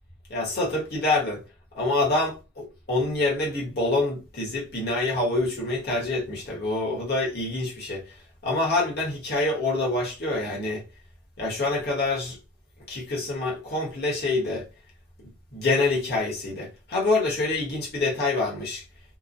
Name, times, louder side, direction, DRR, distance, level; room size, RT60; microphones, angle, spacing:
voice 1, 0.3-1.4 1.7-8.0 8.4-10.8 11.4-12.4 12.9-14.7 15.5-18.8, left 2 dB, 55° left, 1.2 m, -26 dB
3.0 x 2.1 x 2.6 m
head